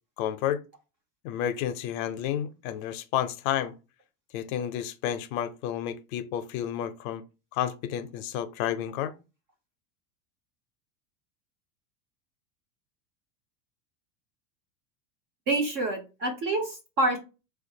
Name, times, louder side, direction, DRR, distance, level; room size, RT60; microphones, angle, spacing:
voice 1, 0.2-0.6 1.2-3.7 4.3-7.2 7.5-9.1, left 10 dB, 60° left, 0.5 m, -31 dB
voice 2, 15.5-17.2, right 2 dB, 30° right, 0.3 m, -27 dB
4.3 x 2.4 x 2.6 m
supercardioid pair, 140°, 49 cm